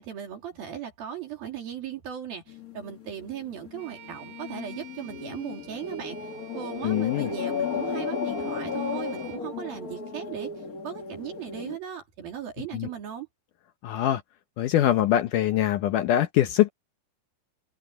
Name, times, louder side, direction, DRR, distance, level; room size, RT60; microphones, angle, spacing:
voice 1, 0.0-13.3, right 9 dB, 75° right, 4.8 m, -38 dB
sound 1, 2.5-11.8, left 6 dB, 90° left, 0.7 m, -35 dB
Bowed string instrument, 3.8-9.5, right 11 dB, 55° right, 5.2 m, -49 dB
voice 2, 6.8-7.3 12.7-12.9 13.8-14.2 14.6-16.7, left 12 dB, 70° left, 2.1 m, -23 dB
open air
omnidirectional pair, 4.3 m